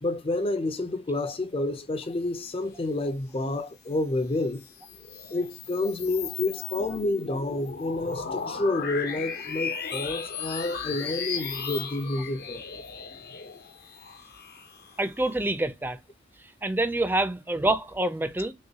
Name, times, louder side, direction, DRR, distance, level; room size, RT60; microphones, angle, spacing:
voice 1, 0.0-4.6 5.3-12.8, left 2 dB, 30° left, 0.6 m, -29 dB
sound 1, 4.4-15.3, left 6 dB, 55° left, 0.8 m, -36 dB
voice 2, 15.0-16.0 16.6-18.5, right 2 dB, 10° right, 0.5 m, -26 dB
6.3 x 2.3 x 2.8 m
head